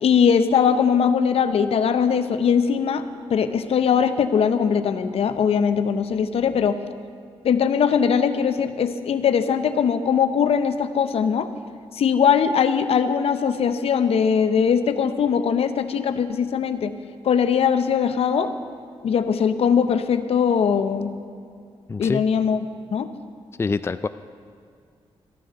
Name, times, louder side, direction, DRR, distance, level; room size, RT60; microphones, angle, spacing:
voice 1, 0.0-6.8 7.4-11.5 11.9-16.9 17.2-18.5 19.0-21.1 22.0-22.6 22.9-23.1, left 7 dB, 70° left, 10 dB, 0.7 m, -20 dB
voice 2, 21.9-22.2 23.6-24.1, left 4 dB, 25° left, 12 dB, 0.4 m, -25 dB
13.5 x 9.3 x 6.6 m, 2.3 s
cardioid pair, 60°, 10 cm